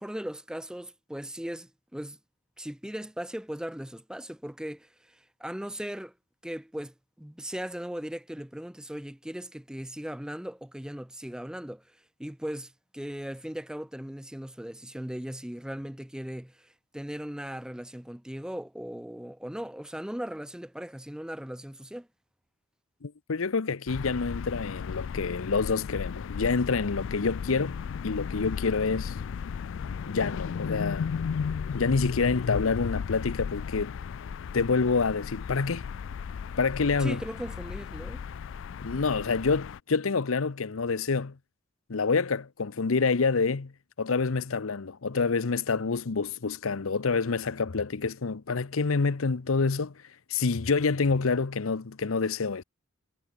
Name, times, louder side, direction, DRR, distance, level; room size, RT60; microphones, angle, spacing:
voice 1, 0.0-2.2 2.6-6.1 6.4-22.1 37.0-38.2, equal, 5° right, 0.5 m, -38 dB
voice 2, 23.0-27.8 28.0-29.2 30.1-31.1 31.7-33.9 34.5-35.8 36.6-37.2 38.8-41.4 41.9-43.7 44.0-49.9 50.3-52.6, left 4 dB, 90° left, 0.8 m, -27 dB
sound 1, 23.9-39.8, left 6 dB, 65° left, 0.4 m, -35 dB
head